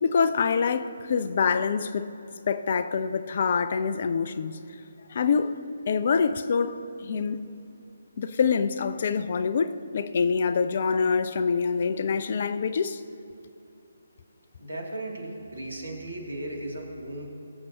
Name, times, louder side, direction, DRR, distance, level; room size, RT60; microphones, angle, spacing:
voice 1, 0.0-2.1 2.5-4.6 5.1-5.6 5.9-7.5 8.2-13.0, left 5 dB, 40° left, 0.4 m, -25 dB
voice 2, 14.6-17.3, right 1 dB, 65° right, 2.4 m, -36 dB
21.5 x 7.6 x 2.8 m
figure-of-eight pair, 140°, 0 cm